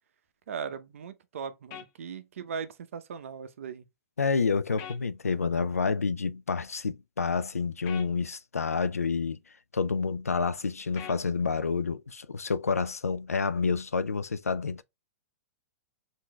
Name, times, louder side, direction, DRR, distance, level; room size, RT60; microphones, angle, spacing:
voice 1, 0.5-3.8, right 6 dB, 65° right, 0.6 m, -38 dB
sound 1, 1.7-1.9 4.8-5.0 7.9-8.1 11.0-11.2, left 9 dB, 35° left, 0.7 m, -42 dB
voice 2, 4.2-9.4 9.7-14.8, left 5 dB, 85° left, 0.4 m, -29 dB
7.3 x 2.7 x 2.2 m
figure-of-eight pair, 110°, 8 cm